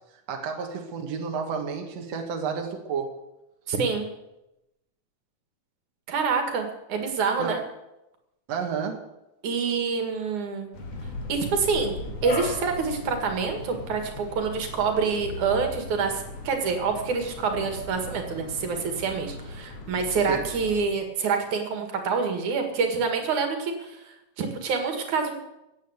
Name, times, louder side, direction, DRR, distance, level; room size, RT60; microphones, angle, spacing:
voice 1, 0.3-3.1 7.4-7.5 8.5-9.0 20.3-20.5, right 6 dB, 60° right, 2 dB, 2.7 m, -31 dB
voice 2, 3.7-4.1 6.1-7.6 9.4-10.7 11.3-12.0 12.2-25.3, right 5 dB, 85° right, 5 dB, 3.6 m, -27 dB
sound 1, 10.7-20.8, left 3 dB, 55° left, 3.3 m, -37 dB
16.5 x 9.4 x 8.1 m, 0.92 s
omnidirectional pair, 3.3 m